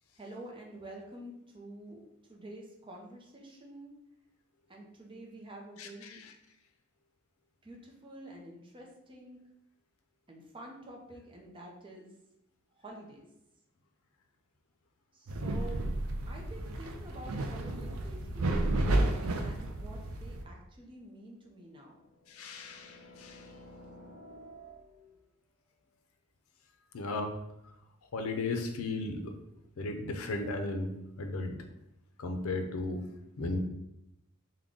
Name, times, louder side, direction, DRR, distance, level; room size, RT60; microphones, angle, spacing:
voice 1, 0.2-3.9 4.7-6.2 7.6-9.4 10.3-12.1 12.8-13.2 15.1-15.8 16.3-18.6 19.4-22.0, right 1 dB, 25° right, -1 dB, 0.6 m, -48 dB
voice 2, 5.8-6.3 22.3-23.5 26.9-27.3 28.1-29.3 29.8-31.6 32.2-33.0 33.4-33.6, left 2 dB, 80° left, 5 dB, 0.5 m, -35 dB
sound 1, 15.3-20.4, right 1 dB, 80° right, 0.5 m, -32 dB
sound 2, 21.7-25.2, equal, 50° left, 0.8 m, -53 dB
3.6 x 2.2 x 3.7 m, 0.84 s
head